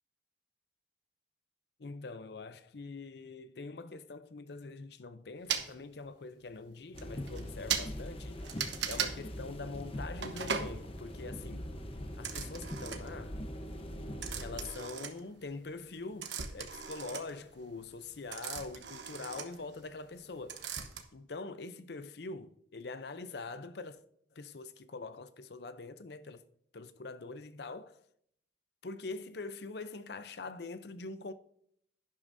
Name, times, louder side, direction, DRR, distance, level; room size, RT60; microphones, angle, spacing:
voice 1, 1.8-8.4 8.9-11.7 12.2-13.4 14.3-20.7 21.1-24.0 24.3-26.4 26.7-28.0 28.8-31.3, left 3 dB, 60° left, 0.6 m, -44 dB
sound 1, 5.5-5.7 6.5-6.6 7.0-7.1 7.3-7.4 7.7-7.9 8.4-9.1 10.2-10.7 12.2-13.2 14.2-15.6 15.9-20.2 20.5-21.0, right 7 dB, 75° right, 1.1 m, -37 dB
sound 2, 6.9-14.7, equal, 30° left, 0.9 m, -42 dB
11.5 x 10.5 x 2.7 m
head